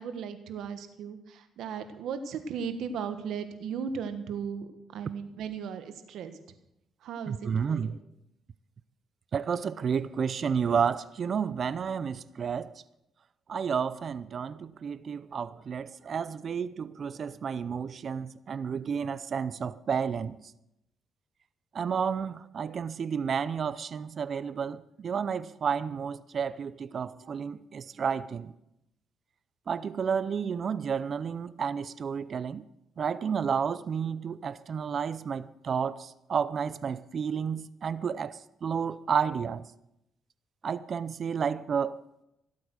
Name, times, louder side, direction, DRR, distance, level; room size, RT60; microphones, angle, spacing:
voice 1, 0.0-6.4 7.0-7.9, right 6 dB, 80° right, 1.5 m, -36 dB
voice 2, 7.3-8.0 9.3-12.8 13.5-20.4 21.7-28.5 29.7-32.6 33.0-39.6 40.6-42.0, right 6 dB, 50° right, 0.5 m, -31 dB
16.5 x 8.4 x 6.5 m
cardioid pair, 90°, 0 cm